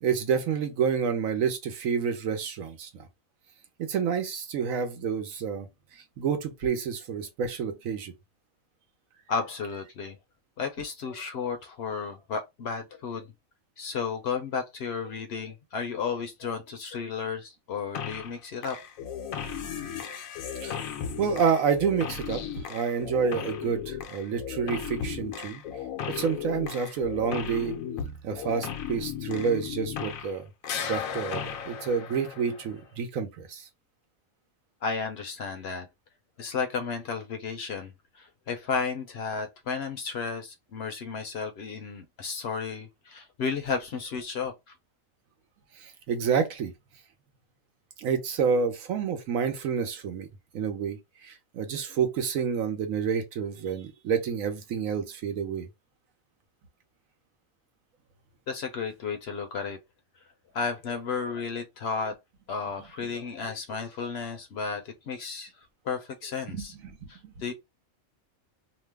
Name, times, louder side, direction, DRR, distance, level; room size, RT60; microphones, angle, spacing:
voice 1, 0.0-3.1 3.8-5.7 5.9-8.1 20.6-20.7 21.2-25.6 26.1-27.8 28.2-30.5 30.8-33.7 45.8-46.7 48.0-50.3 50.5-55.7 66.5-67.3, right 6 dB, 85° right, 1.2 m, -29 dB
voice 2, 9.3-10.2 10.6-13.3 13.8-18.8 34.8-35.9 36.4-44.7 58.5-59.8 60.5-62.2 62.5-65.5 65.8-66.7 67.1-67.5, left 5 dB, 60° left, 0.7 m, -33 dB
sound 1, 17.9-18.4 18.6-30.4 30.6-32.8, left 8 dB, 90° left, 1.0 m, -36 dB
3.0 x 2.0 x 3.3 m
omnidirectional pair, 1.4 m